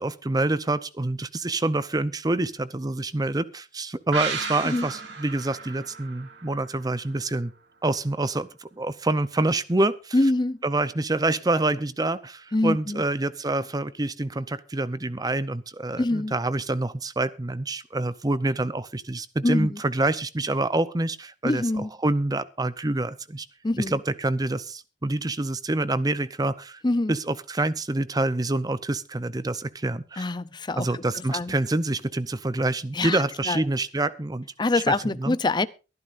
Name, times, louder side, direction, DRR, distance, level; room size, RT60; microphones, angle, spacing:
voice 1, 0.0-7.5 7.8-10.1 10.6-23.5 23.8-26.8 27.1-30.3 30.8-34.5 34.7-35.4, right 2 dB, 20° right, 0.7 m, -27 dB
sound 1, 4.1-7.6 7.9-8.0, right 5 dB, 80° right, 3.1 m, -35 dB
voice 2, 10.1-10.6 12.5-13.0 16.0-16.3 19.4-19.8 21.4-21.9 23.6-24.0 26.8-27.1 30.2-31.5 32.9-33.6 34.6-35.7, left 2 dB, 25° left, 0.6 m, -25 dB
23.5 x 11.0 x 2.6 m
head